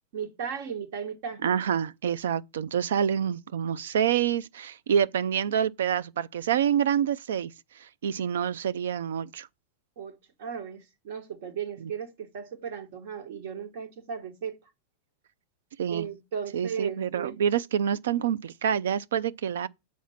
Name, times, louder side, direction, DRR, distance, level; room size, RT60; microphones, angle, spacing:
voice 1, 0.1-1.4 10.0-14.6 15.9-17.3, right 7 dB, 70° right, 1.5 m, -36 dB
voice 2, 1.4-7.5 7.8-9.5 11.8-11.9 15.8-16.1 16.5-19.7, right 8 dB, 85° right, 0.4 m, -27 dB
7.3 x 4.2 x 5.7 m
hypercardioid pair, 125°, 0 cm